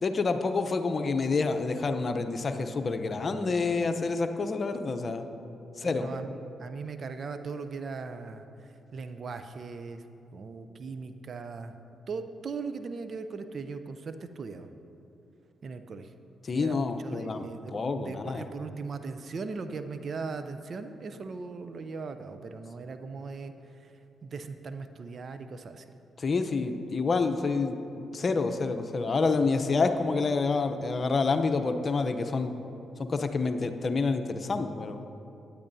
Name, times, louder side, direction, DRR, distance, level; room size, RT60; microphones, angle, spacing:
voice 1, 0.0-5.2 5.8-6.1 16.4-17.4 17.7-18.4 26.2-32.5 33.0-35.0, left 4 dB, 45° left, 7 dB, 0.7 m, -28 dB
voice 2, 5.7-8.4 8.9-10.0 10.3-11.7 12.1-14.7 15.6-16.1 16.5-23.5 24.2-25.8, right 4 dB, 55° right, 9 dB, 0.6 m, -39 dB
17.0 x 9.8 x 2.7 m, 2.8 s
hypercardioid pair, 45°, 0 cm